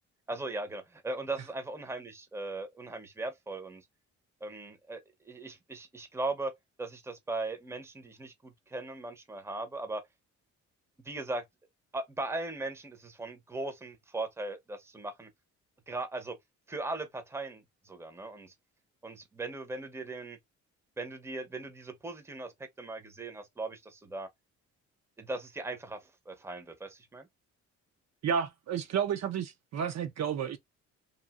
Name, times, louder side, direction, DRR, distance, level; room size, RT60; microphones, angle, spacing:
voice 1, 0.3-3.8 4.4-6.5 6.8-10.0 11.0-11.4 11.9-15.3 15.9-16.4 16.7-18.5 19.0-20.4 21.0-22.5 22.8-24.3 25.2-27.3, right 2 dB, 10° right, 0.7 m, -38 dB
voice 2, 28.2-30.6, right 8 dB, 60° right, 0.7 m, -31 dB
2.8 x 2.6 x 2.3 m
cardioid pair, 90°, 30 cm